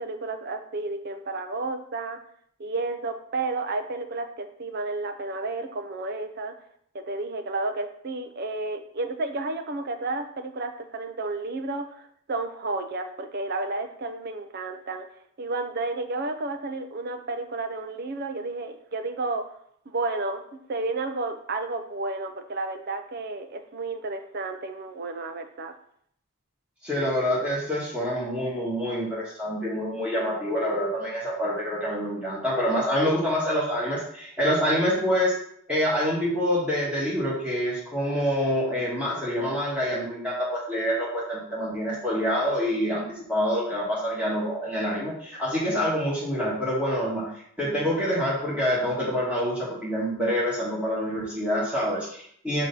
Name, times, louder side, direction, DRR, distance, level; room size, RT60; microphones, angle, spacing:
voice 1, 0.0-2.2 2.6-6.5 6.9-15.1 15.4-19.4 19.9-25.7, right 3 dB, 45° right, 6 dB, 0.5 m, -31 dB
voice 2, 26.8-35.3 35.7-47.3 47.6-52.6, equal, 5° right, -7 dB, 1.5 m, -26 dB
6.3 x 2.8 x 5.3 m, 0.66 s
head